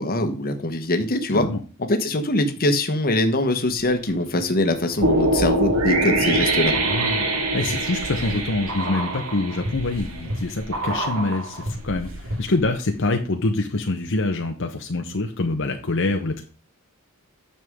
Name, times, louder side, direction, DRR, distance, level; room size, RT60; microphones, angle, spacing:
voice 1, 0.0-1.5 1.9-6.7, left 1 dB, 45° left, 6 dB, 1.2 m, -22 dB
sound 1, 3.7-4.4 4.9-12.8 13.0-13.1, right 1 dB, 70° right, 2.2 m, -33 dB
sound 2, 5.0-10.2, right 2 dB, 85° right, 2.0 m, -23 dB
voice 2, 6.8-7.3 7.5-16.4, left 2 dB, 60° left, 3 dB, 0.9 m, -25 dB
9.5 x 6.8 x 3.6 m, 0.36 s
head